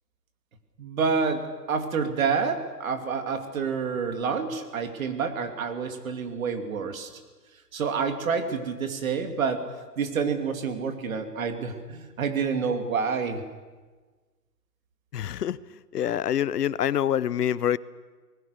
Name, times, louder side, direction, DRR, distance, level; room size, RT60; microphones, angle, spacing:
voice 1, 0.8-7.1 7.7-9.7 10.0-13.4, right 5 dB, 55° right, 7 dB, 2.9 m, -28 dB
voice 2, 15.1-15.6 15.9-17.8, left 10 dB, 70° left, 19 dB, 0.9 m, -26 dB
26.5 x 20.0 x 6.7 m, 1.3 s
hypercardioid pair, 165°, 49 cm